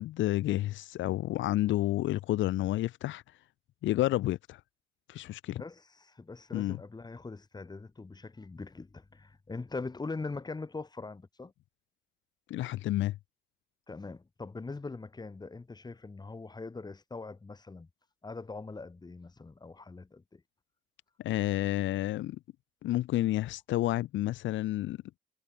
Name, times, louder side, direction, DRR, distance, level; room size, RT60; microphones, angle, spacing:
voice 1, 0.0-3.2 3.8-4.6 5.1-5.6 6.5-6.8 12.5-13.2 21.2-22.4 22.8-25.0, left 15 dB, 85° left, 0.5 m, -30 dB
voice 2, 5.5-11.5 13.9-17.9 18.2-20.4, left 3 dB, 20° left, 1.8 m, -42 dB
cardioid pair, 105°, 19 cm